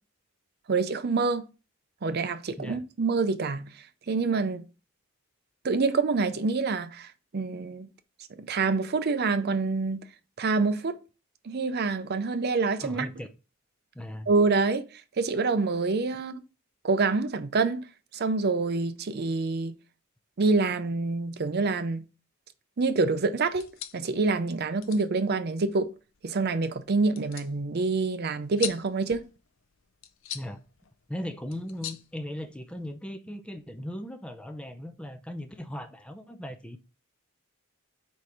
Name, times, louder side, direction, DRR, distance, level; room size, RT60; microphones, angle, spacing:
voice 1, 0.7-1.5 2.0-3.7 4.1-4.6 5.6-7.9 8.4-10.0 10.4-11.0 11.4-13.1 14.3-16.3 16.8-17.9 18.1-19.7 20.4-22.0 22.8-25.9 26.2-29.3, right 3 dB, 50° right, 0.5 m, -26 dB
voice 2, 12.8-13.3 13.9-14.3 30.3-30.6 31.1-36.8, equal, 5° left, 0.4 m, -38 dB
sound 1, 23.5-32.9, left 10 dB, 65° left, 0.6 m, -43 dB
4.6 x 4.2 x 4.9 m
head